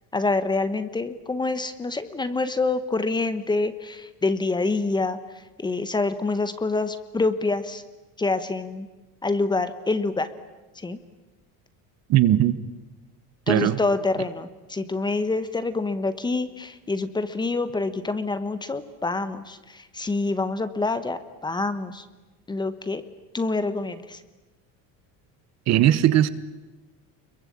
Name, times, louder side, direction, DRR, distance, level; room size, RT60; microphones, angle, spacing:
voice 1, 0.1-7.8 8.2-8.9 9.2-10.3 10.8-11.0 13.5-22.1 22.5-23.0 23.3-24.2, left 3 dB, 10° left, 11 dB, 1.2 m, -26 dB
voice 2, 12.1-12.6 13.5-13.8 25.7-26.3, right 12 dB, 45° right, 15 dB, 1.2 m, -18 dB
29.5 x 23.0 x 8.7 m, 1.1 s
cardioid pair, 175°, 38 cm